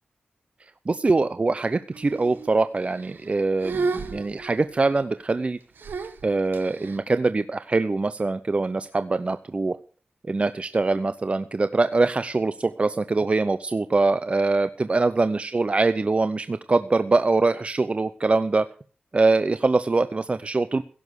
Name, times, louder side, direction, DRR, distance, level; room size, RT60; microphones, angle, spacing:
voice 1, 0.9-5.6 6.2-9.8 10.2-18.7 19.1-20.8, right 3 dB, 35° right, 12 dB, 0.7 m, -23 dB
sound 1, 1.9-2.5 2.9-3.3 3.6-4.8 5.8-7.0, right 4 dB, 85° right, 1.8 m, -32 dB
16.5 x 7.2 x 8.1 m, 0.41 s
wide cardioid pair, 75°, 3 cm